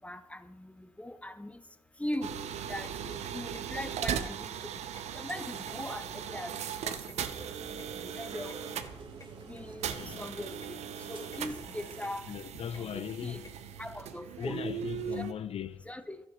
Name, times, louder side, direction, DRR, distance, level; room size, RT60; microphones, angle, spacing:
voice 1, 0.0-1.6 2.0-2.3 2.7-4.7 5.1-6.6 6.8-7.0 7.9-8.6 9.5-10.8 11.1-12.3 12.8-13.4 13.8-14.6 15.1-15.3 15.9-16.2, left 1 dB, 10° left, 0.8 m, -40 dB
sound 1, 2.1-2.2 2.5-2.9 3.2-3.3 3.5-3.6 3.9-4.7 4.9-6.1 6.4-7.9 8.1-8.2 8.5-8.6 8.9-9.0 9.2-9.3 9.6-10.0 10.3-10.7 11.0-11.4 11.7-13.5, left 3 dB, 30° left, 1.8 m, -54 dB
sound 2, 2.2-15.3, right 8 dB, 85° right, 0.7 m, -39 dB
sound 3, 7.1-12.1, right 3 dB, 45° right, 1.8 m, -50 dB
voice 2, 10.0-10.3 12.3-13.5 14.4-15.8, left 9 dB, 65° left, 0.4 m, -38 dB
12.0 x 6.7 x 5.4 m
cardioid pair, 60°, 11 cm